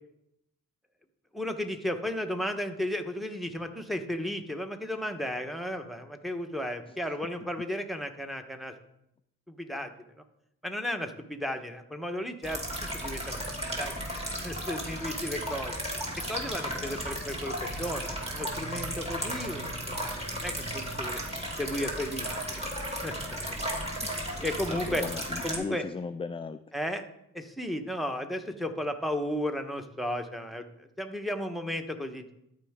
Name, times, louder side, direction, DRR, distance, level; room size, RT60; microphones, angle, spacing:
voice 1, 1.3-8.7 9.5-10.2 10.6-12.6 12.9-13.4 13.8-13.9 14.2-15.8 16.3-19.8 20.4-21.2 21.6-22.3 23.0-23.1 23.5-23.6 24.4-25.0 25.4-25.9 26.7-27.0 27.3-32.3, left 1 dB, ahead, 5 dB, 1.1 m, -34 dB
sound 1, 12.4-25.6, equal, 15° right, 2.7 m, -35 dB
sound 2, 18.2-19.0 19.9-20.3 21.0-21.4 22.2-22.7, right 5 dB, 50° right, 0.9 m, -47 dB
voice 2, 24.7-26.6, left 4 dB, 15° left, 10 dB, 0.3 m, -37 dB
12.5 x 4.6 x 3.7 m, 0.80 s
supercardioid pair, 50°, 35 cm